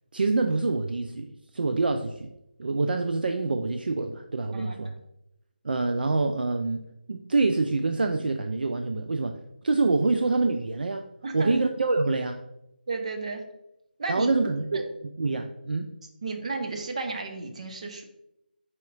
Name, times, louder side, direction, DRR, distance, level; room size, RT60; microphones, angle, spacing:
voice 1, 0.1-1.3 1.5-2.3 2.6-4.9 5.6-6.8 7.1-11.0 11.3-12.4 14.1-15.9, right 3 dB, 60° right, 5 dB, 0.4 m, -26 dB
voice 2, 4.5-4.9 11.2-11.6 12.9-13.4 14.0-14.3 14.7-14.8 16.2-18.0, right 3 dB, 40° right, 4 dB, 0.7 m, -33 dB
4.4 x 2.9 x 3.9 m, 0.84 s
figure-of-eight pair, 165°, 6 cm